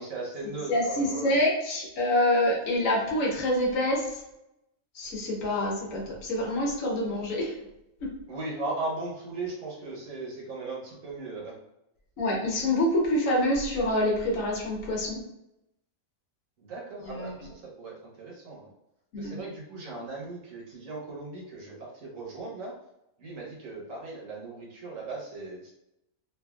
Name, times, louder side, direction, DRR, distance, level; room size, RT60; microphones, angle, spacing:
voice 1, 0.0-1.3 8.3-11.5 16.6-18.7 19.2-22.7 23.2-25.7, right 3 dB, 75° right, -2 dB, 1.2 m, -37 dB
voice 2, 0.7-4.2 4.9-7.5 8.0-8.1 12.2-15.2 17.0-17.5 19.1-19.4, left 1 dB, 75° left, -2 dB, 1.2 m, -26 dB
3.2 x 2.4 x 2.3 m, 0.86 s
omnidirectional pair, 1.4 m